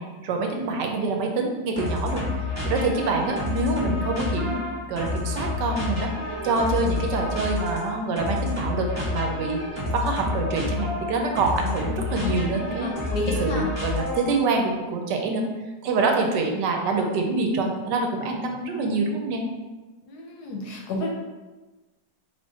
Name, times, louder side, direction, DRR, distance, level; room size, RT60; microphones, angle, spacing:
voice 1, 0.0-2.2 2.6-4.6 4.9-6.1 6.4-9.6 9.9-12.9 13.4-15.4 15.8-19.4, right 3 dB, 75° right, 2 dB, 1.2 m, -26 dB
sound 1, 1.8-14.5, left 3 dB, 10° left, 0.8 m, -29 dB
voice 2, 12.8-13.7 20.1-21.1, left 2 dB, 70° left, 0 dB, 1.1 m, -31 dB
3.6 x 3.5 x 4.0 m, 1.2 s
omnidirectional pair, 2.0 m